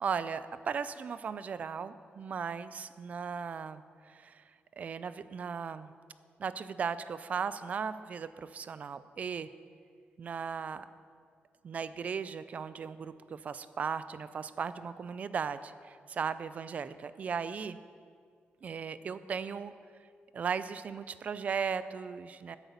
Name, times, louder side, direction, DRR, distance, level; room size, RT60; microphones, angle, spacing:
voice 1, 0.0-4.4 4.8-5.9 6.4-9.5 10.2-10.9 11.6-15.7 16.1-17.8 18.6-19.7 20.3-22.6, right 6 dB, 40° right, 14 dB, 0.4 m, -37 dB
9.0 x 8.1 x 6.8 m, 2.1 s
wide cardioid pair, 175°, 4 cm